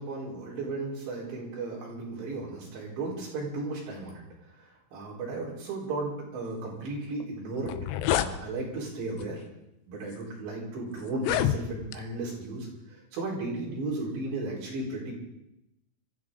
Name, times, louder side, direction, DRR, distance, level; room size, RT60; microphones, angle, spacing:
voice 1, 0.0-4.2 4.9-7.7 8.1-9.4 9.9-15.1, right 2 dB, 60° right, -5 dB, 6.6 m, -35 dB
sound 1, 7.2-7.3 7.6-8.3 9.2-9.4 10.1-10.2 11.1-12.0, left 12 dB, 85° left, 2.4 m, -28 dB
24.5 x 14.5 x 3.9 m, 0.85 s
omnidirectional pair, 5.9 m